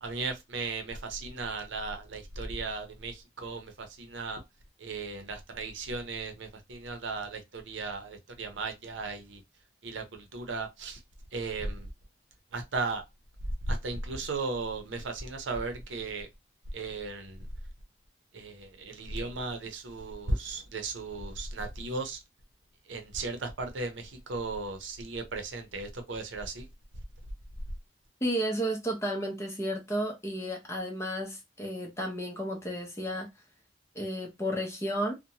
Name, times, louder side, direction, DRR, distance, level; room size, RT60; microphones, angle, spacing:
voice 1, 0.0-4.4 4.8-9.4 9.8-11.0 11.3-11.9 12.5-13.0 13.7-16.3 16.7-17.4 18.3-22.2 22.9-26.7, right 3 dB, 85° right, 0.7 m, -36 dB
voice 2, 28.2-33.3 33.9-35.1, equal, 15° left, 0.6 m, -32 dB
2.6 x 2.1 x 2.8 m
head